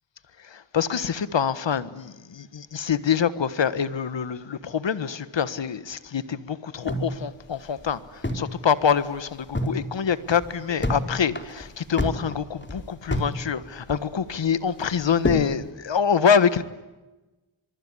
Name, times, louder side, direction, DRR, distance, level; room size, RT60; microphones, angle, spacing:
voice 1, 0.5-16.6, left 7 dB, 65° left, 1.6 m, -25 dB
feet scrape stairs, 6.9-8.6 8.9-9.0 9.3-9.8 10.2-11.0 11.3-13.4 13.6-14.3 14.8-15.5, left 1 dB, 25° left, 4.0 m, -28 dB
25.0 x 24.0 x 9.9 m
cardioid pair, 55°, 47 cm